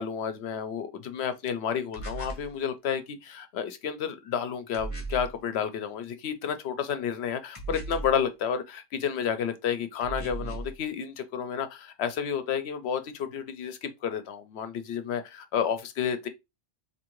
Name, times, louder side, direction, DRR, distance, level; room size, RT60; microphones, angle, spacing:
voice 1, 0.0-16.3, left 7 dB, 75° left, 0.8 m, -31 dB
sound 1, 1.9-2.5 4.7-5.3 7.5-8.2 10.0-10.7, right 2 dB, 35° left, 0.8 m, -36 dB
3.6 x 2.8 x 3.0 m
omnidirectional pair, 1.1 m